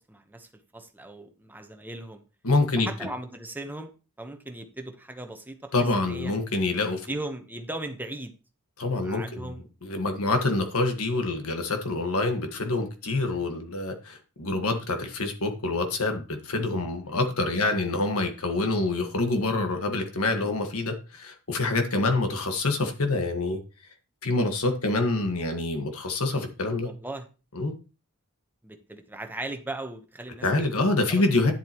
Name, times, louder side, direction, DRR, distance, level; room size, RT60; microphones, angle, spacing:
voice 1, 0.1-2.2 2.8-5.7 6.1-6.3 7.1-8.3 9.0-9.7 10.2-10.3 17.6-17.8 26.8-27.3 28.6-30.5 31.1-31.5, right 2 dB, 10° right, 6 dB, 1.0 m, -38 dB
voice 2, 2.4-3.1 5.7-7.1 8.8-23.6 24.2-26.9 27.5-27.7 30.4-31.5, left 2 dB, 70° left, 6 dB, 1.6 m, -26 dB
10.5 x 7.6 x 3.0 m, 0.32 s
head